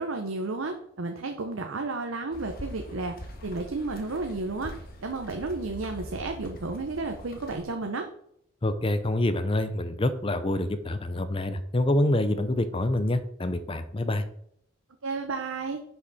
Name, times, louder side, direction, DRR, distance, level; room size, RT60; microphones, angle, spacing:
voice 1, 0.0-8.1 15.0-15.8, right 3 dB, 85° right, 4 dB, 0.8 m, -32 dB
sound 1, 2.3-7.6, equal, 45° left, 1.4 m, -43 dB
voice 2, 8.6-14.2, left 1 dB, 25° left, 11 dB, 0.6 m, -26 dB
10.0 x 5.8 x 4.1 m, 0.70 s
head